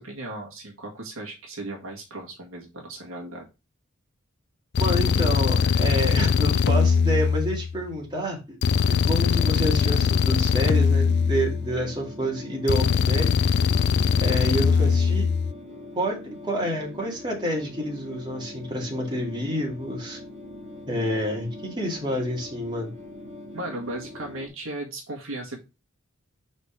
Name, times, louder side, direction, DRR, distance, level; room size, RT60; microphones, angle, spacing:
voice 1, 0.0-3.5 23.5-25.6, right 2 dB, 65° right, -1 dB, 1.8 m, -36 dB
sound 1, 4.7-7.9 8.6-11.9 12.7-15.5, left 6 dB, 50° left, 0.4 m, -21 dB
voice 2, 4.8-8.6 8.9-13.3 14.2-15.3 15.9-16.2 16.4-20.2 20.9-22.9, equal, 20° right, -1 dB, 2.2 m, -28 dB
sound 2, 8.7-24.5, left 1 dB, 35° right, 2.0 m, -42 dB
4.8 x 4.2 x 5.7 m, 0.27 s
head